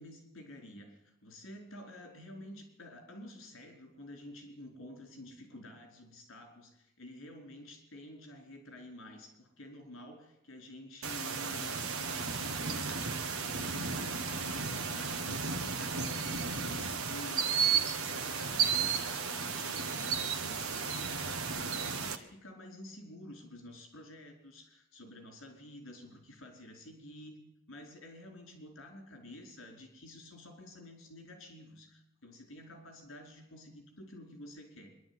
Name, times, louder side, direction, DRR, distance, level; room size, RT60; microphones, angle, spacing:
voice 1, 0.0-27.4 27.7-34.9, left 1 dB, 65° left, 3 dB, 4.6 m, -50 dB
sound 1, 11.0-22.2, right 6 dB, 85° right, 1.5 m, -33 dB
23.0 x 11.5 x 9.8 m, 0.87 s
head